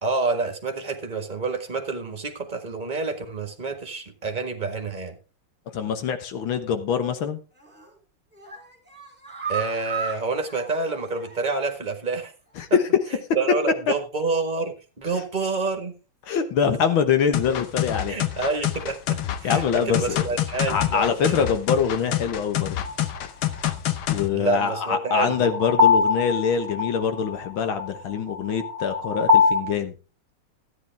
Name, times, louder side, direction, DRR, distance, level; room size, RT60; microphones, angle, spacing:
voice 1, 0.0-5.1 9.5-12.3 13.3-16.0 18.1-21.4 24.3-25.5, right 3 dB, 25° right, 4 dB, 1.5 m, -28 dB
voice 2, 5.7-7.4 12.6-12.8 16.3-18.2 19.4-20.3 20.7-22.8 24.1-29.9, left 7 dB, 75° left, 8 dB, 2.0 m, -24 dB
sound 1, 7.6-7.9 8.3-11.7 12.0-12.1 12.5-12.6, right 6 dB, 5° right, 3.1 m, -35 dB
sound 2, 17.3-24.3, left 12 dB, 90° left, 1.8 m, -27 dB
sound 3, 22.9-23.0 24.8-29.6, left 5 dB, 45° right, 1.0 m, -22 dB
13.0 x 9.8 x 3.5 m, 0.34 s
omnidirectional pair, 2.2 m